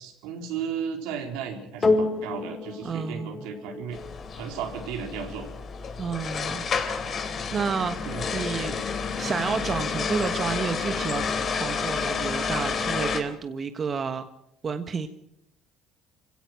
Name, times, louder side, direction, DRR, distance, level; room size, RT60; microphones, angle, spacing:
voice 1, 0.0-4.0 4.4-5.5 8.0-8.3, right 7 dB, 85° right, 3 dB, 4.3 m, -34 dB
sound 1, 1.8-10.4 11.1-11.2, left 3 dB, 30° left, 5.3 m, -33 dB
voice 2, 2.8-3.4 6.0-6.6 7.5-8.0 8.3-8.7 9.2-14.3 14.6-15.1, right 5 dB, 40° right, 8 dB, 1.4 m, -30 dB
sound 2, 3.9-13.2, left 5 dB, 45° left, 3.4 m, -30 dB
25.5 x 17.0 x 6.3 m, 0.74 s
supercardioid pair, 85°, 0 cm